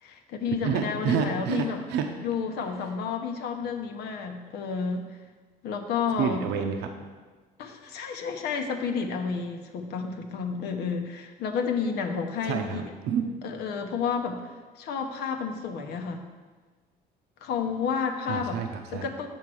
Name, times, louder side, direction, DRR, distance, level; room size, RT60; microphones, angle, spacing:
voice 1, 0.0-1.8 2.2-5.2 5.6-6.5 7.6-12.9 13.4-14.5 14.8-16.2 17.4-18.6 18.9-19.3, left 6 dB, 75° left, 4 dB, 0.9 m, -31 dB
voice 2, 0.6-2.1 6.2-6.9 12.4-13.2 18.3-19.1, right 7 dB, 85° right, 5 dB, 0.7 m, -29 dB
7.2 x 4.6 x 6.3 m, 1.4 s
cardioid pair, 110°, 17 cm